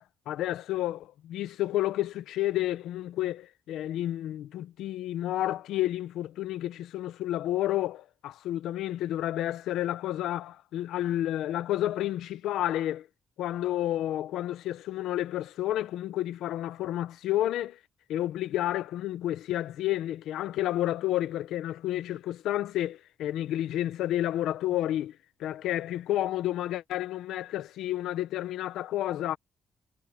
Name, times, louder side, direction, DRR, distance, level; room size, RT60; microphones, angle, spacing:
voice 1, 0.0-13.1 13.4-17.8 18.1-25.1 25.4-29.4, left 13 dB, 85° left, 1.2 m, -30 dB
cardioid pair, 90°, 0 cm